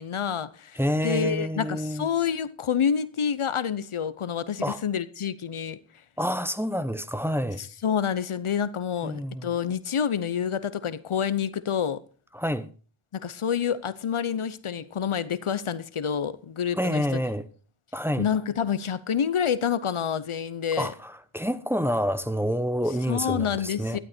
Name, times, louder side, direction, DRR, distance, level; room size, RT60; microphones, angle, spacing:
voice 1, 0.0-5.8 7.6-12.0 13.1-17.2 18.2-20.9 23.1-24.0, left 8 dB, 80° left, 0.8 m, -28 dB
voice 2, 0.8-2.1 4.6-4.8 6.2-7.6 9.0-9.5 12.3-12.7 16.7-17.5 17.9-18.3 20.8-24.0, equal, 5° right, 1.0 m, -28 dB
12.5 x 11.5 x 4.3 m
wide cardioid pair, 40°, 50 cm